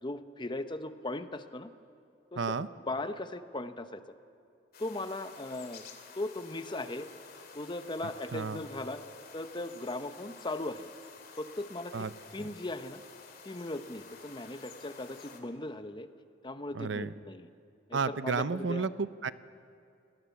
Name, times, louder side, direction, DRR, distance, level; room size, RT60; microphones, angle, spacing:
voice 1, 0.0-1.7 2.3-2.5 2.9-4.0 4.8-5.8 6.1-7.1 7.5-9.0 9.3-10.9 11.4-12.1 12.3-13.0 13.4-16.1 16.4-17.5 17.9-18.9, left 2 dB, 25° left, 10 dB, 0.9 m, -38 dB
voice 2, 2.4-2.7 8.3-8.6 11.9-12.1 12.4-12.5 16.7-17.1 17.9-19.3, right 4 dB, 65° right, 15 dB, 0.6 m, -32 dB
sound 1, 4.7-15.4, left 5 dB, 50° left, 2.4 m, -51 dB
29.0 x 19.0 x 7.1 m, 2.5 s
head